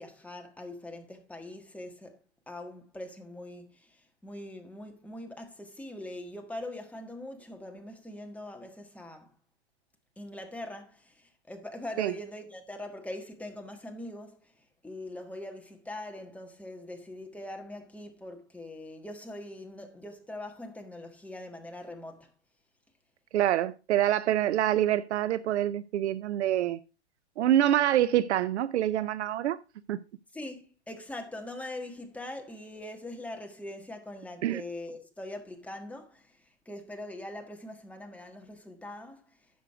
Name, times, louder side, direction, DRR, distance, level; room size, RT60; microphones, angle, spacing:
voice 1, 0.0-2.2 2.5-9.3 10.2-14.5 14.8-22.3 30.3-39.3, left 1 dB, 5° left, 1.5 m, -42 dB
voice 2, 23.3-26.8 27.4-29.6 29.9-30.0 34.4-34.6, right 12 dB, 80° right, 0.6 m, -26 dB
10.0 x 6.4 x 4.8 m
hypercardioid pair, 130°, 34 cm